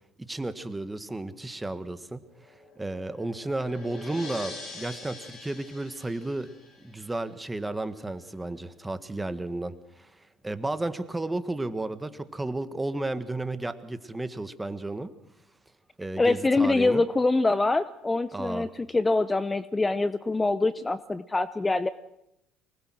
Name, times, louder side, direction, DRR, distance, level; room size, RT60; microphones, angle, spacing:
voice 1, 0.2-2.2 2.8-6.5 6.8-10.1 10.4-15.1 16.0-17.0 18.3-18.7, right 2 dB, 15° right, 12 dB, 1.6 m, -33 dB
sound 1, 2.2-7.3, left 3 dB, 55° left, 7.3 m, -44 dB
voice 2, 16.2-21.9, left 2 dB, 20° left, 14 dB, 0.8 m, -24 dB
24.5 x 19.5 x 6.3 m, 0.84 s
hypercardioid pair, 65°, 0 cm